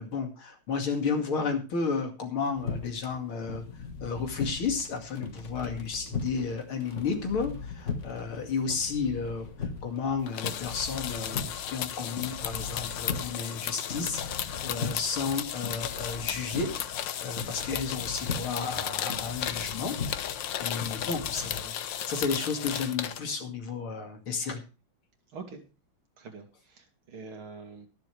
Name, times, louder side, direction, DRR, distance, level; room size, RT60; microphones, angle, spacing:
voice 1, 0.0-3.6 4.0-20.0 20.6-24.6, left 5 dB, 85° left, 5 dB, 3.2 m, -32 dB
sound 1, 2.6-21.6, left 5 dB, 40° left, 1.6 m, -39 dB
sound 2, 10.3-23.2, left 10 dB, 65° left, 1.5 m, -35 dB
voice 2, 25.3-25.6 26.2-27.9, right 4 dB, 80° right, 4 dB, 3.4 m, -44 dB
22.0 x 7.5 x 3.3 m, 0.32 s
omnidirectional pair, 2.3 m